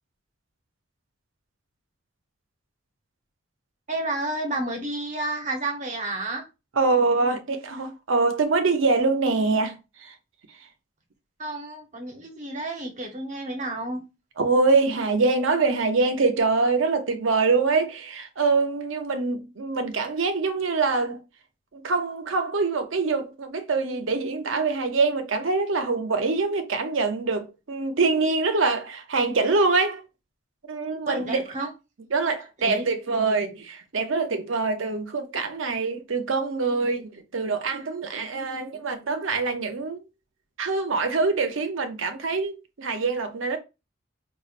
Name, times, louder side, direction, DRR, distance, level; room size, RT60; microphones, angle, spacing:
voice 1, 3.9-6.4 11.4-14.0 31.1-31.7 32.6-32.8, right 2 dB, 35° right, 0.9 m, -31 dB
voice 2, 6.8-10.2 14.4-21.2 21.7-30.0 30.7-31.4 32.1-40.0 40.6-43.6, right 3 dB, 75° right, 0.7 m, -24 dB
5.2 x 2.4 x 2.5 m
head